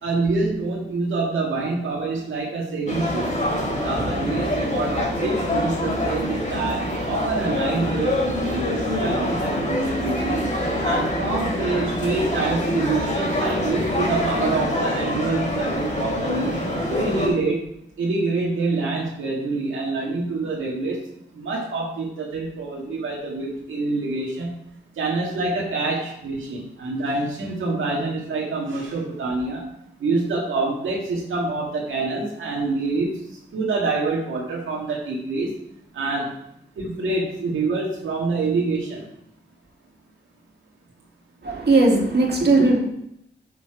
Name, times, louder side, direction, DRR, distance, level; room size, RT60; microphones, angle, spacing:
voice 1, 0.0-3.3 3.8-8.2 8.4-10.4 10.8-16.6 16.9-17.6 18.0-21.0 21.3-24.5 25.0-29.7 30.0-35.5 35.9-36.3 36.8-39.0, right 3 dB, 85° right, -3 dB, 1.8 m, -26 dB
sound 1, 2.9-17.3, left 1 dB, 40° left, 3.8 m, -25 dB
voice 2, 41.4-42.8, right 2 dB, 55° right, -1 dB, 2.6 m, -18 dB
7.0 x 6.6 x 4.8 m, 0.76 s
cardioid pair, 45°, 20 cm